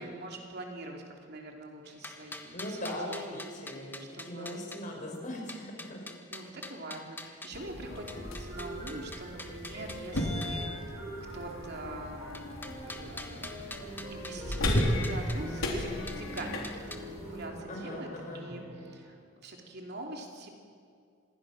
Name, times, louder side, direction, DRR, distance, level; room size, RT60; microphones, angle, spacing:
voice 1, 0.0-3.4 4.0-4.6 6.3-10.6 11.3-12.2 12.8-13.5 14.1-18.1 18.3-20.6, right 2 dB, 55° right, 1 dB, 3.1 m, -44 dB
sound 1, 1.8-4.8 5.5-7.6 8.1-10.6 12.3-15.4 16.1-17.0, left 2 dB, 10° left, 1.4 m, -45 dB
voice 2, 2.5-6.0 17.7-18.4, left 1 dB, 40° left, 0 dB, 5.5 m, -40 dB
sound 2, 7.5-17.5, left 1 dB, 90° left, 3.8 m, -35 dB
sound 3, 7.9-19.2, equal, 30° right, 6.3 m, -45 dB
26.0 x 20.5 x 6.4 m, 2.3 s
head